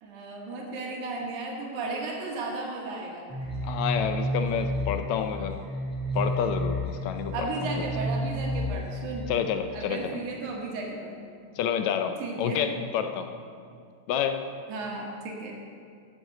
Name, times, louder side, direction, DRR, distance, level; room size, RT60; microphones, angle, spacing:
voice 1, 0.0-3.3 7.3-9.3 9.7-11.2 12.2-12.6 14.7-15.7, right 3 dB, 80° right, -1 dB, 2.6 m, -34 dB
sound 1, 3.3-9.4, equal, ahead, 1.8 m, -31 dB
voice 2, 3.6-5.6 6.1-7.7 9.3-10.2 11.6-13.3 14.1-14.5, left 8 dB, 80° left, 7 dB, 1.7 m, -29 dB
7.7 x 7.4 x 7.6 m, 2.3 s
omnidirectional pair, 3.4 m